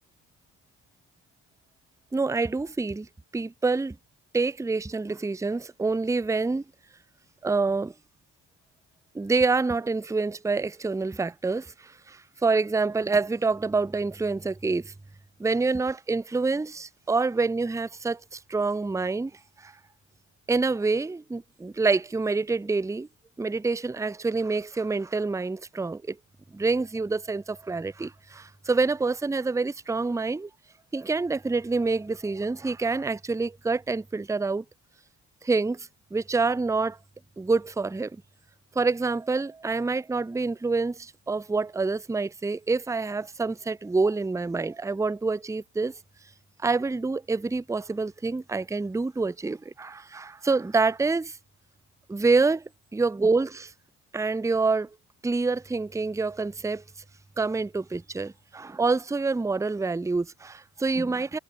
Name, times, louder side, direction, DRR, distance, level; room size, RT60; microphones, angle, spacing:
voice 1, 2.1-3.1 3.3-4.0 4.3-6.6 7.4-7.9 9.1-14.9 15.4-19.3 19.6-19.7 20.5-23.1 23.4-26.2 26.5-30.5 30.9-34.6 35.4-37.0 37.4-38.2 38.8-46.0 46.6-51.4 52.1-52.6 52.9-53.7 54.1-54.9 55.2-56.8 57.4-61.4, right 3 dB, 5° right, 0.6 m, -27 dB
hypercardioid pair, 50°, 46 cm